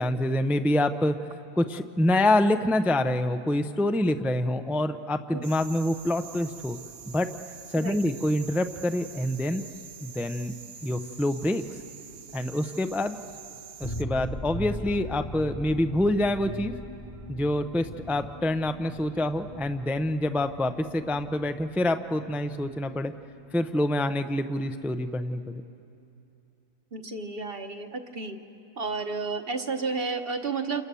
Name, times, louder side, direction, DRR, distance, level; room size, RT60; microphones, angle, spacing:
voice 1, 0.0-6.8 7.1-7.3 7.7-9.6 10.0-10.5 10.8-11.6 12.3-13.2 13.8-16.7 17.3-23.1 23.5-25.6, left 1 dB, ahead, 8 dB, 0.4 m, -26 dB
sound 1, 5.4-14.0, right 7 dB, 75° right, 1.3 m, -46 dB
sound 2, 13.8-23.4 23.7-23.8 24.1-24.2, left 1 dB, 25° left, 1.0 m, -40 dB
voice 2, 26.9-28.4 28.8-30.8, right 4 dB, 45° right, 5 dB, 1.3 m, -31 dB
29.5 x 28.5 x 7.0 m, 2.7 s
omnidirectional pair, 1.5 m